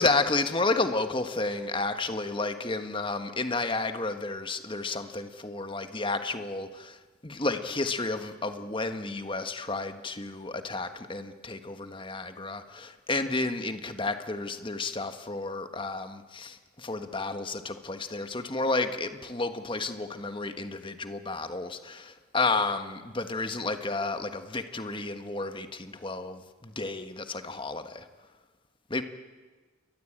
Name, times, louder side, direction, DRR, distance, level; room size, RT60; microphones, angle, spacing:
voice 1, 0.0-28.1 28.9-29.0, left 3 dB, 25° left, 8 dB, 1.5 m, -31 dB
28.0 x 22.5 x 8.9 m, 1.4 s
head